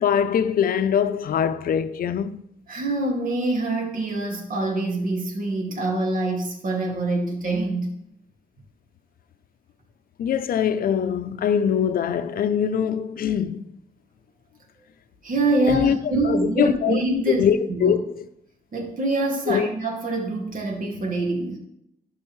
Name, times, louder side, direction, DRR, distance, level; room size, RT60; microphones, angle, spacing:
voice 1, 0.0-2.4 10.2-13.6 15.7-16.0 16.2-17.0 17.4-18.2 19.5-19.7, left 8 dB, 70° left, 0.5 m, -22 dB
voice 2, 2.7-8.0 15.2-17.9 18.7-21.6, right 2 dB, 60° right, 2.1 m, -25 dB
15.0 x 5.4 x 3.2 m
cardioid pair, 110°, 16 cm